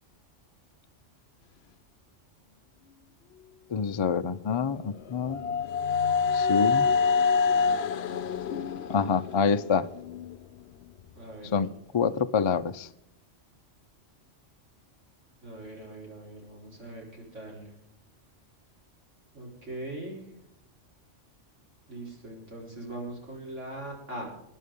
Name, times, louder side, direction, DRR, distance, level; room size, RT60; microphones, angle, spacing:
voice 1, 3.7-5.4 6.3-6.9 8.9-9.9 11.5-11.7 11.9-12.9, left 6 dB, 50° left, 10 dB, 0.3 m, -26 dB
sound 1, 4.5-10.4, left 5 dB, 65° left, 0.9 m, -27 dB
voice 2, 11.1-11.5 15.4-17.7 19.3-20.2 21.9-24.3, right 1 dB, 70° right, -1 dB, 4.6 m, -41 dB
21.5 x 10.0 x 3.6 m, 0.82 s
omnidirectional pair, 1.3 m